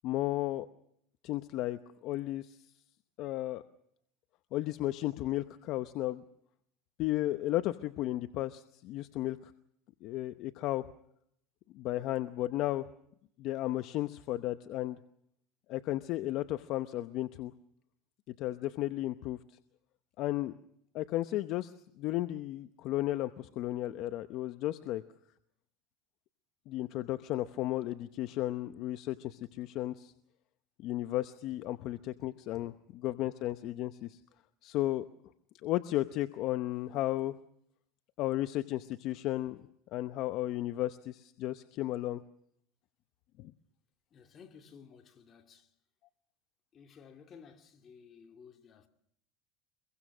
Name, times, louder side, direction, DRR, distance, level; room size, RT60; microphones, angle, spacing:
voice 1, 0.0-0.7 1.2-2.6 3.2-3.6 4.5-6.2 7.0-9.5 10.0-10.9 11.7-12.9 13.4-15.0 15.7-17.5 18.4-19.4 20.2-20.5 20.9-25.0 26.7-30.1 30.8-34.2 34.6-35.1 35.6-37.3 38.2-39.6 39.9-42.2 43.4-43.5, left 15 dB, 50° left, 0.9 m, -34 dB
voice 2, 44.1-45.7 46.7-48.9, left 6 dB, 30° left, 2.7 m, -55 dB
24.0 x 22.5 x 6.3 m
supercardioid pair, 135°, 0 cm